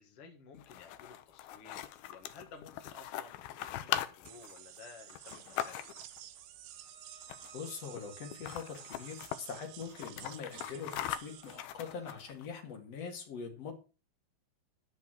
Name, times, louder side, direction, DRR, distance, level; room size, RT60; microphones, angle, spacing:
voice 1, 0.0-1.8 2.1-5.9, left 5 dB, 65° left, 4 dB, 1.5 m, -54 dB
sound 1, 0.5-6.2 7.2-7.7 8.0-8.1 8.3-9.4 9.8-12.5, left 12 dB, 80° left, 2.4 m, -40 dB
sound 2, 4.3-11.7, right 12 dB, 80° right, 3.0 m, -52 dB
Bowed string instrument, 6.7-12.3, right 2 dB, 25° right, 5.2 m, -62 dB
voice 2, 7.5-13.7, left 6 dB, 45° left, 3 dB, 2.7 m, -43 dB
11.0 x 5.9 x 6.2 m, 0.33 s
omnidirectional pair, 4.8 m